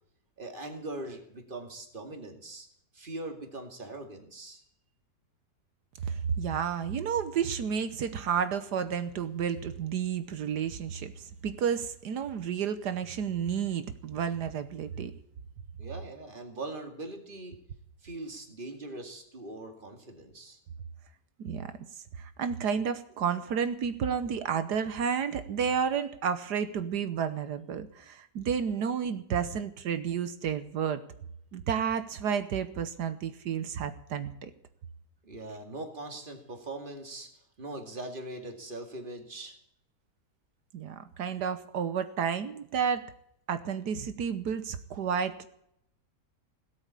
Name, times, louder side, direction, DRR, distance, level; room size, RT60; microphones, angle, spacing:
voice 1, 0.4-2.7 2.9-4.6 15.8-17.6 18.0-20.6 35.2-39.6, right 2 dB, 30° right, 4 dB, 2.4 m, -41 dB
voice 2, 6.1-15.1 21.4-21.7 22.2-31.0 31.5-34.5 40.7-43.0 43.5-45.5, right 7 dB, 70° right, 11 dB, 1.5 m, -31 dB
17.0 x 8.3 x 8.2 m, 0.73 s
omnidirectional pair, 1.9 m